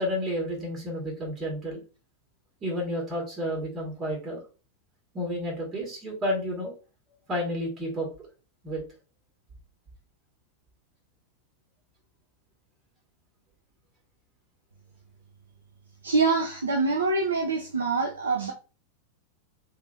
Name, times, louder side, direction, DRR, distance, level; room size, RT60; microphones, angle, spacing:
voice 1, 0.0-1.8 2.6-4.4 5.1-6.7 7.3-8.1 8.6-8.8, equal, 25° right, 1.7 m, -31 dB
voice 2, 16.0-18.5, right 3 dB, 75° right, 0.6 m, -25 dB
3.5 x 3.3 x 2.6 m
figure-of-eight pair, 90°, 0 cm